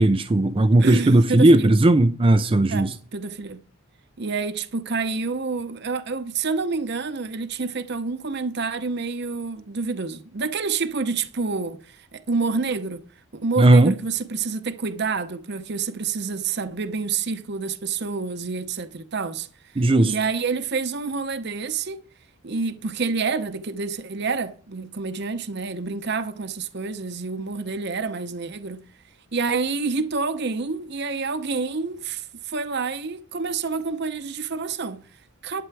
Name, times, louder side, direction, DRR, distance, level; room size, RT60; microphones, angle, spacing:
voice 1, 0.0-2.9 13.6-13.9 19.8-20.1, right 2 dB, 25° right, 0.4 m, -16 dB
voice 2, 0.8-1.7 2.7-3.6 4.2-13.0 13.3-22.0 22.4-28.8 29.3-35.6, right 4 dB, 50° right, 0.8 m, -28 dB
11.5 x 8.6 x 4.7 m
head